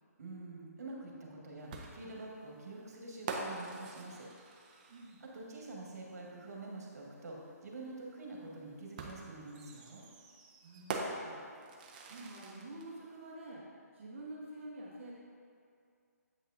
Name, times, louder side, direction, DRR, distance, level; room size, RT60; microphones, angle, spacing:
voice 1, 0.2-4.3 5.2-10.0, right 2 dB, 70° right, -2 dB, 1.5 m, -47 dB
sound 1, 1.7-5.4 6.8-6.9 9.0-12.9, right 3 dB, 30° right, 0.5 m, -44 dB
voice 2, 4.9-5.2 10.6-11.5 12.1-13.6 13.9-15.1, right 1 dB, 45° right, -4 dB, 1.0 m, -48 dB
7.8 x 5.5 x 2.5 m, 2.3 s
hypercardioid pair, 155°, 9 cm